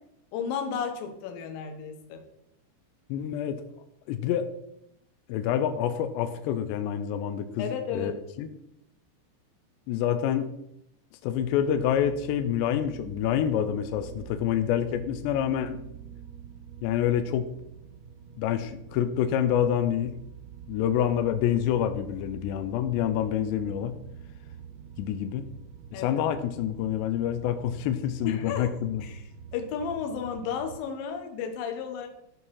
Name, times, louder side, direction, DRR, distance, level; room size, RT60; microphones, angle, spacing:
voice 1, 0.3-2.2 7.6-8.2 25.9-26.2 28.2-29.2 29.5-32.1, left 7 dB, 65° left, 4 dB, 2.5 m, -33 dB
voice 2, 3.1-3.6 4.1-4.5 5.3-8.1 8.4-8.5 9.9-10.5 11.2-15.8 16.8-17.5 18.4-20.2 20.7-24.0 25.0-25.5 25.9-29.1, left 10 dB, 80° left, 9 dB, 2.7 m, -27 dB
sound 1, 11.3-30.8, right 8 dB, 85° right, 3.1 m, -46 dB
14.0 x 4.8 x 5.4 m, 0.81 s
omnidirectional pair, 5.3 m